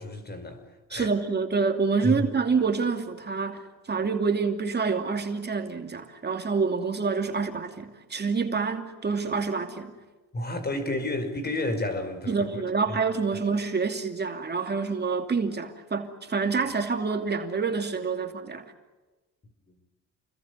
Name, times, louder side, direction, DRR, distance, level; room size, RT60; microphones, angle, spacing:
voice 1, 0.0-1.1 2.0-2.3 10.3-13.0 13.3-13.4 19.7-19.8, left 1 dB, 35° left, 5.4 m, -31 dB
voice 2, 0.9-3.6 3.9-9.9 12.3-18.7, right 5 dB, 35° right, 2.7 m, -27 dB
29.0 x 21.5 x 8.2 m
cardioid pair, 90°, 30 cm